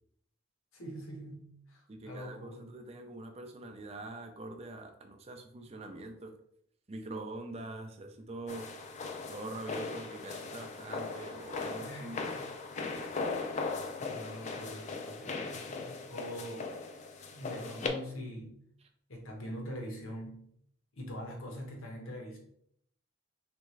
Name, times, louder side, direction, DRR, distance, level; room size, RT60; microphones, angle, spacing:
voice 1, 0.7-2.7 11.8-12.5 12.9-13.1 14.0-16.7 17.3-18.6 19.1-20.5 20.9-22.4, equal, 75° left, 1 dB, 1.1 m, -43 dB
voice 2, 1.9-6.3 6.9-8.7 9.3-12.2, right 2 dB, 30° right, 4 dB, 0.4 m, -44 dB
sound 1, 8.5-17.9, left 4 dB, 35° left, 0.4 m, -39 dB
3.5 x 3.4 x 3.2 m, 0.71 s
head